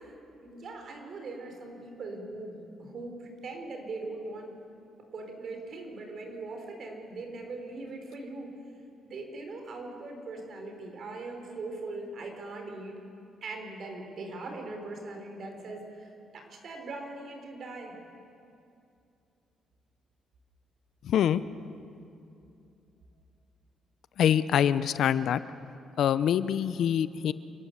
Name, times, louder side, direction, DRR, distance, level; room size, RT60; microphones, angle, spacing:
voice 1, 0.0-4.5 5.1-8.5 9.0-13.0 13.4-18.0, right 2 dB, 55° right, 3 dB, 4.4 m, -40 dB
voice 2, 21.0-21.4 24.2-25.4 26.0-27.3, left 9 dB, 70° left, 15 dB, 0.6 m, -25 dB
28.5 x 12.5 x 8.1 m, 2.6 s
cardioid pair, 90°, 0 cm